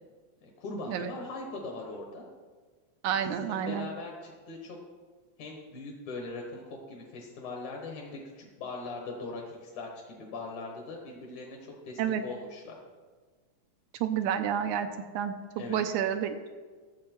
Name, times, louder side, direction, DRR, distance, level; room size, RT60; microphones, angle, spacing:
voice 1, 0.4-2.2 3.2-4.8 5.4-12.8 15.6-15.8, left 3 dB, 75° left, 0 dB, 2.7 m, -40 dB
voice 2, 3.0-3.9 12.0-12.2 14.0-14.9 15.1-15.4 15.7-16.6, right 9 dB, 85° right, 7 dB, 2.0 m, -29 dB
14.0 x 7.4 x 4.5 m, 1.5 s
omnidirectional pair, 3.5 m